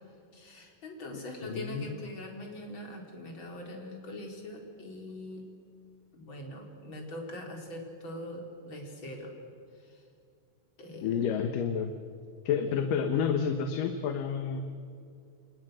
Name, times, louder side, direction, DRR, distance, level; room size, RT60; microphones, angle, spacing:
voice 1, 0.3-5.4 6.1-9.3 9.7-10.0 10.8-11.3 12.7-12.8, left 1 dB, 35° left, 1 dB, 4.9 m, -42 dB
voice 2, 1.4-2.0 11.0-11.9 12.5-14.6, left 7 dB, 75° left, 6 dB, 2.9 m, -29 dB
29.0 x 27.0 x 6.4 m, 2.5 s
omnidirectional pair, 3.9 m